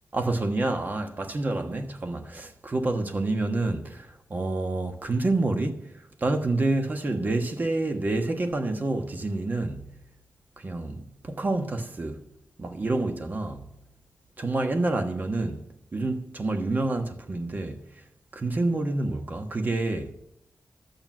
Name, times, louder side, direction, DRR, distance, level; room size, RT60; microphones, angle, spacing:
voice 1, 0.1-5.9 6.2-9.9 10.6-12.2 12.6-13.6 14.4-15.6 15.9-17.8 18.3-20.1, right 2 dB, 35° right, 1.3 m, -28 dB
12.0 x 7.7 x 7.4 m
wide cardioid pair, 145°, 5 cm